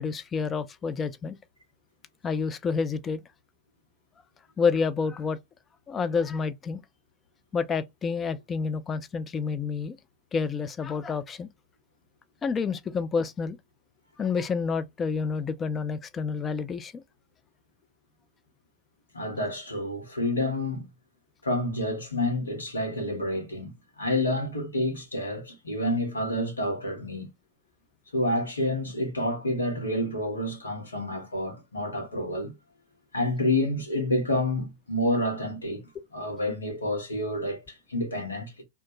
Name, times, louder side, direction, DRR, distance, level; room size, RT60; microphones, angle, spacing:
voice 1, 0.0-1.4 2.2-3.2 4.6-5.4 5.9-6.8 7.5-10.0 10.3-11.5 12.4-13.6 14.2-17.0, left 5 dB, 20° left, 0.3 m, -29 dB
voice 2, 19.1-20.9 21.4-23.7 24.0-27.3 28.1-32.5 33.1-35.8 36.1-38.6, left 1 dB, 75° left, 0.9 m, -29 dB
2.2 x 2.1 x 2.7 m
figure-of-eight pair, 90°, 0 cm